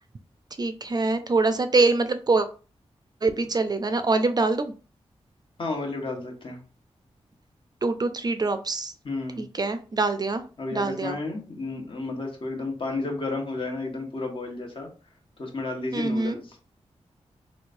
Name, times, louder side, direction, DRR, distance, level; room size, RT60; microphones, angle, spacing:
voice 1, 0.6-2.5 3.2-4.7 7.8-8.9 9.4-10.4 10.7-11.2 15.9-16.4, right 3 dB, 35° right, 9 dB, 0.4 m, -24 dB
voice 2, 5.6-6.6 9.0-9.4 10.6-14.9 15.4-16.6, left 3 dB, 50° left, 1 dB, 1.1 m, -32 dB
3.1 x 3.1 x 2.5 m, 0.35 s
wide cardioid pair, 90°, 11 cm